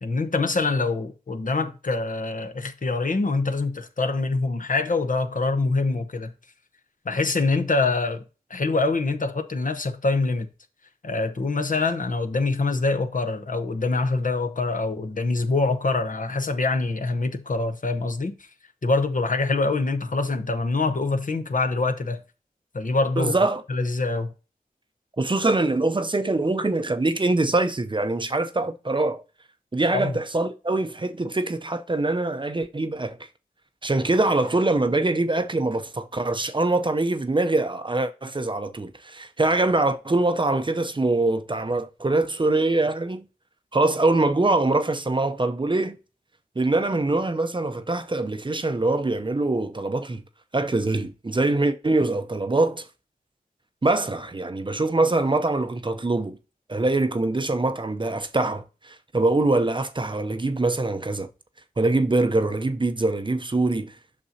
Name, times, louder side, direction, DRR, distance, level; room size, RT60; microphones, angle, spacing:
voice 1, 0.0-6.3 7.0-8.2 8.5-10.5 11.0-18.3 18.8-22.2 22.7-23.3 23.7-24.3 29.9-30.1, left 3 dB, 60° left, 0.9 m, -25 dB
voice 2, 23.2-23.6 25.2-29.2 29.7-33.3 33.8-43.2 43.7-46.0 46.6-50.2 50.5-52.8 53.8-56.4 56.7-61.3 61.8-63.9, right 2 dB, 30° right, 0.6 m, -23 dB
8.5 x 5.9 x 2.8 m
wide cardioid pair, 50°, 16 cm